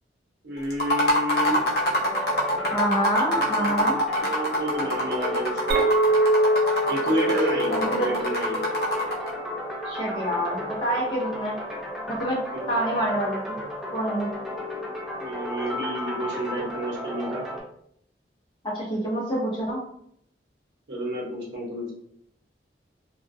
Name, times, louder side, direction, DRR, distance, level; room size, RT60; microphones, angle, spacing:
voice 1, 0.4-1.6 3.3-5.8 6.9-8.6 12.5-12.8 15.2-17.4 20.9-21.9, right 1 dB, 85° right, -3 dB, 0.9 m, -30 dB
sound 1, 0.7-9.3, equal, 60° left, 0.7 m, -25 dB
sound 2, 1.5-17.6, left 1 dB, ahead, 0.4 m, -33 dB
voice 2, 2.7-4.0 7.7-8.1 9.9-11.6 12.1-12.4 12.7-13.6 13.9-14.3 18.6-19.8, right 1 dB, 25° left, -4 dB, 0.7 m, -27 dB
Chink clink, 5.7-10.2, right 1 dB, 60° right, 0.5 m, -25 dB
2.3 x 2.2 x 2.6 m, 0.70 s
head